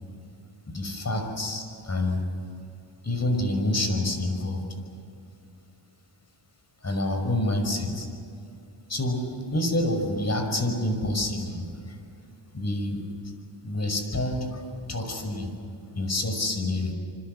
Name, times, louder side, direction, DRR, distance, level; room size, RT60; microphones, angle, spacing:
voice 1, 0.7-2.2 3.0-4.7 6.8-8.1 8.9-9.3 9.5-12.0 12.5-13.0 13.6-15.5 15.9-16.9, left 1 dB, 35° left, 5 dB, 5.6 m, -27 dB
26.5 x 25.5 x 8.0 m, 2.6 s
cardioid pair, 95°, 48 cm